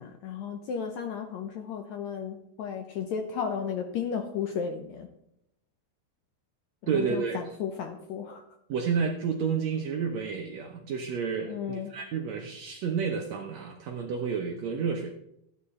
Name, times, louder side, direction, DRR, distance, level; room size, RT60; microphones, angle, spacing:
voice 1, 0.0-5.1 6.9-8.4 11.5-11.9, left 7 dB, 75° left, 6 dB, 1.7 m, -34 dB
voice 2, 6.9-7.5 8.7-15.1, right 6 dB, 70° right, 3 dB, 1.7 m, -30 dB
13.5 x 9.5 x 4.2 m, 0.80 s
omnidirectional pair, 4.1 m